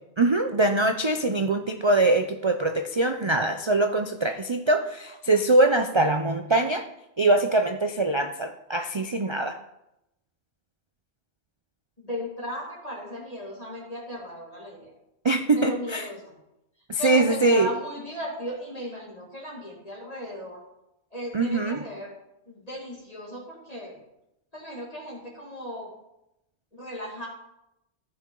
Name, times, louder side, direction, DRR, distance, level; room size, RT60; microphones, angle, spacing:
voice 1, 0.2-6.9 7.2-9.6 15.2-16.1 16.9-17.7 21.3-21.8, right 2 dB, 45° right, 6 dB, 0.3 m, -23 dB
voice 2, 12.0-14.9 15.6-16.2 17.0-20.6 21.1-22.1 22.5-23.9 24.5-25.9 26.7-27.3, equal, 30° left, -4 dB, 2.2 m, -36 dB
14.5 x 5.7 x 3.8 m, 0.87 s
omnidirectional pair, 1.2 m